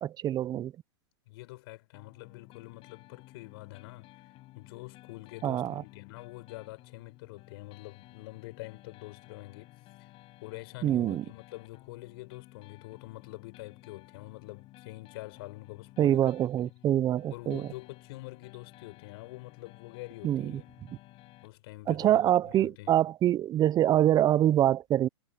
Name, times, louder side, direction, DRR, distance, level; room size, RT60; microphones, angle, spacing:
voice 1, 0.0-0.7 5.4-5.8 10.8-11.2 16.0-17.6 20.2-20.5 21.9-25.1, right 12 dB, 25° right, 0.9 m, -25 dB
voice 2, 1.3-4.1 4.5-9.7 10.0-10.1 10.4-16.3 17.3-20.7 21.4-23.0, left 20 dB, 55° left, 6.3 m, -46 dB
sound 1, 1.9-21.5, left 18 dB, 40° left, 6.1 m, -54 dB
hypercardioid pair, 125°, 15 cm